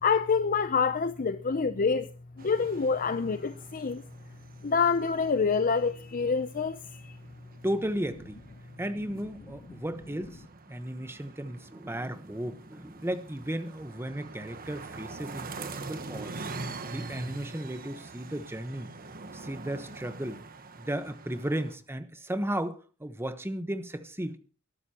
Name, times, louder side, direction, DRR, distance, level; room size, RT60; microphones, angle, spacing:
voice 1, 0.0-2.1 2.4-4.0 4.6-7.2, left 5 dB, 40° left, 0.6 m, -27 dB
sound 1, 2.4-21.8, right 3 dB, 40° right, 1.2 m, -44 dB
voice 2, 7.6-8.4 8.8-10.4 10.7-16.4 16.8-18.9 19.3-20.4 20.8-24.4, right 1 dB, 10° right, 1.1 m, -35 dB
22.0 x 12.0 x 2.9 m
head